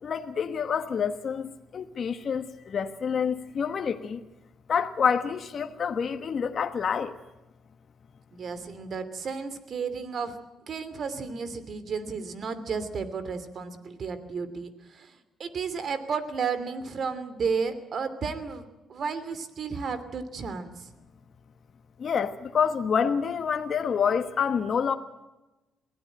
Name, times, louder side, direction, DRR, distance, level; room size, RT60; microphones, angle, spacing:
voice 1, 0.0-4.2 4.7-7.2 22.0-24.9, left 6 dB, 50° left, 7 dB, 1.3 m, -27 dB
voice 2, 8.3-10.4 10.7-20.9, right 5 dB, 55° right, 12 dB, 2.9 m, -33 dB
22.5 x 16.0 x 9.0 m, 1.0 s
cardioid pair, 90°, 0 cm